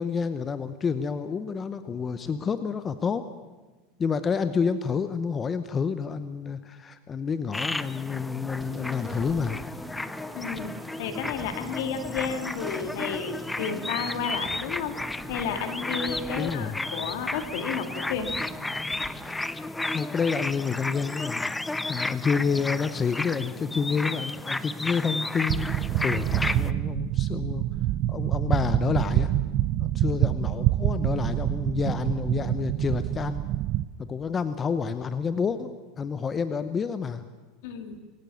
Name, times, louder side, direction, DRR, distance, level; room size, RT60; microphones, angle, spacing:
voice 1, 0.0-3.2 4.0-9.6 16.3-16.8 19.9-27.7 28.1-29.3 29.8-33.4 34.0-37.2, left 6 dB, 25° left, 11 dB, 0.9 m, -29 dB
sound 1, 7.5-26.7, left 2 dB, 10° left, 0.6 m, -33 dB
sound 2, 8.5-19.3, right 4 dB, 20° right, 2.7 m, -45 dB
voice 2, 10.3-15.0 15.3-18.3 37.6-38.0, left 6 dB, 70° left, 7 dB, 2.7 m, -32 dB
sound 3, 25.5-33.8, right 14 dB, 50° right, 0.7 m, -26 dB
22.5 x 17.5 x 7.2 m, 1.2 s
supercardioid pair, 130°, 0 cm